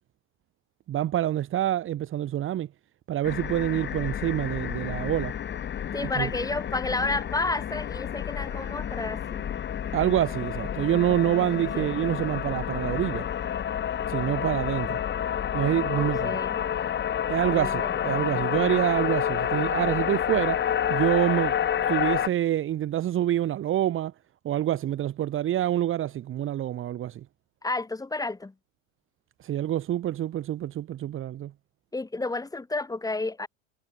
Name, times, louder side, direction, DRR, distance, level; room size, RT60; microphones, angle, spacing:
voice 1, 0.9-2.7 3.1-5.3 6.2-6.3 9.9-13.3 14.1-15.0 15.5-16.4 17.3-21.6 21.9-24.1 24.4-27.2 29.4-31.5, right 12 dB, 30° right, 2.1 m, -26 dB
sound 1, 3.2-22.3, left 9 dB, 25° left, 3.4 m, -29 dB
voice 2, 5.9-9.5 11.7-11.9 15.9-16.7 17.5-18.0 27.6-28.5 31.9-33.5, left 3 dB, 10° left, 5.2 m, -31 dB
hypercardioid pair, 110°, 41 cm